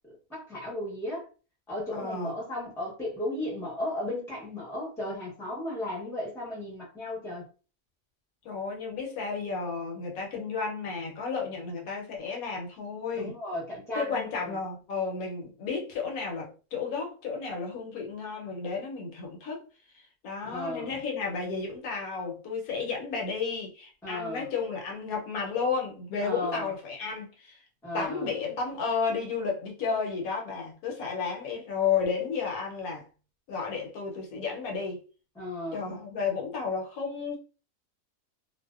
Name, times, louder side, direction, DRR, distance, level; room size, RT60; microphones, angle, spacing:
voice 1, 0.3-1.2 1.7-7.5 13.1-14.3 20.4-21.0 24.0-24.4 26.2-26.7 27.8-28.3 35.4-35.8, left 1 dB, 5° left, 0.6 m, -35 dB
voice 2, 1.9-2.3 8.4-13.3 13.9-19.6 20.2-27.6 27.9-33.0 33.5-35.0 35.7-37.4, left 5 dB, 75° left, 1.1 m, -32 dB
2.6 x 2.0 x 2.3 m
omnidirectional pair, 1.6 m